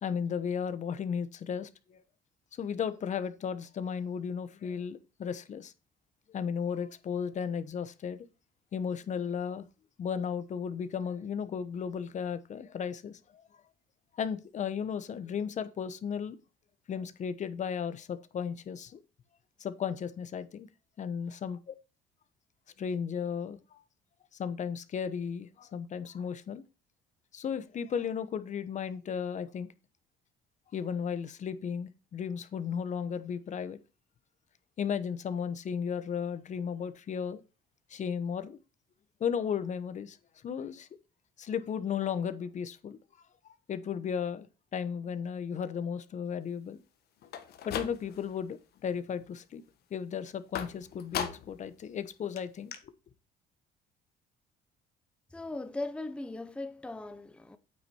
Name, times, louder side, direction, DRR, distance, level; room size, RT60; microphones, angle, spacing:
voice 1, 0.0-2.0 2.5-5.7 6.3-8.2 8.7-9.7 10.0-13.4 14.1-16.4 16.9-19.0 19.6-20.7 21.0-21.7 22.8-23.8 24.3-26.6 27.3-29.7 30.7-33.8 34.8-37.4 37.9-38.6 39.2-40.2 40.4-40.9 41.4-43.0 43.7-44.5 44.7-46.8 47.6-49.6 49.9-52.9, left 7 dB, 45° left, 1.0 m, -35 dB
sound 1, 47.2-48.4 48.8-49.3 50.5-51.7 52.0-52.1 52.4-52.5 52.7-52.8, left 9 dB, 70° left, 1.5 m, -38 dB
voice 2, 55.3-57.6, left 2 dB, 5° left, 0.8 m, -38 dB
9.1 x 6.0 x 4.3 m
cardioid pair, 110°, 17 cm